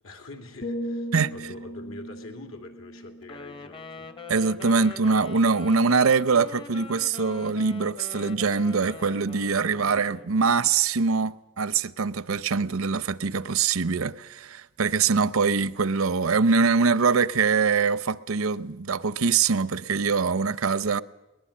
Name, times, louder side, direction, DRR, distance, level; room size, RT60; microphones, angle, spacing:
voice 1, 0.0-4.1, left 2 dB, 85° left, 2.9 m, -44 dB
sound 1, 0.6-4.6 5.0-5.3, equal, 50° left, 1.4 m, -38 dB
Wind instrument woodwind instrument, 3.2-10.5, left 4 dB, 25° left, 0.7 m, -43 dB
voice 2, 4.3-21.0, right 5 dB, 85° right, 0.7 m, -23 dB
22.0 x 19.5 x 8.6 m
head